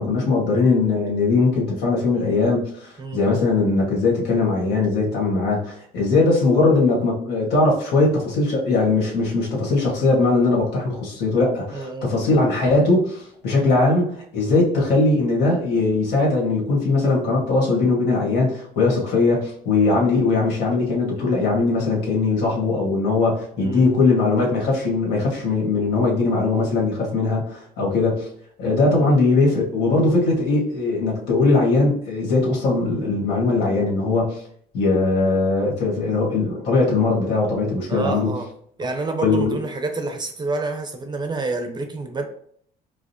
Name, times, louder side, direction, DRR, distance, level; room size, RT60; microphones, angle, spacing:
voice 1, 0.0-28.3 28.6-34.4 34.7-38.3 39.2-39.6, left 3 dB, 80° left, -2 dB, 1.5 m, -20 dB
voice 2, 11.7-12.2 23.6-24.0 29.0-29.1 37.9-38.5 38.8-42.2, right 3 dB, 25° right, 6 dB, 0.5 m, -28 dB
4.9 x 2.0 x 2.8 m, 0.62 s
cardioid pair, 110°, 17 cm